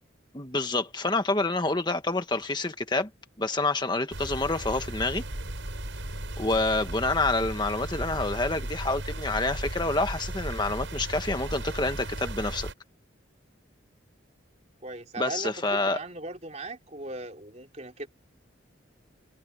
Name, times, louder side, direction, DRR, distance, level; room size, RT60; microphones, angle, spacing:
voice 1, 0.3-3.1 3.4-5.2 6.4-12.7 15.2-16.0, left 2 dB, 20° left, 1.6 m, -27 dB
sound 1, 4.1-12.7, right 1 dB, 75° right, 5.9 m, -36 dB
voice 2, 14.8-18.1, right 2 dB, 35° right, 3.5 m, -38 dB
head